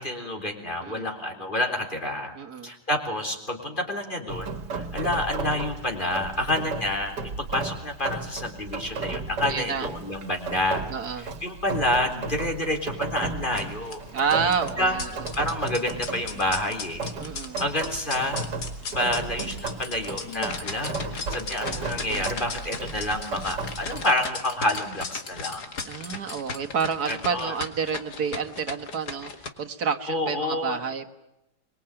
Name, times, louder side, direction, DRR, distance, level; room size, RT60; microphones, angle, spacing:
voice 1, 0.0-2.3 2.6-10.8 11.1-15.0 15.3-17.1 17.6-18.5 18.9-25.6 27.1-27.5 30.1-30.8, left 1 dB, 30° left, 4 dB, 3.9 m, -29 dB
voice 2, 0.8-1.1 2.4-2.7 9.5-9.9 10.9-11.3 14.1-15.1 17.2-17.6 25.8-29.3 29.6-31.1, right 6 dB, 65° right, 5 dB, 2.0 m, -29 dB
Rain, 4.3-24.1, right 3 dB, 85° right, 2.4 m, -34 dB
sound 1, 13.4-29.5, left 4 dB, 70° left, 2.6 m, -38 dB
sound 2, 19.6-21.4 23.5-27.1, left 3 dB, 85° left, 3.4 m, -46 dB
24.0 x 23.5 x 8.9 m, 0.89 s
omnidirectional pair, 1.8 m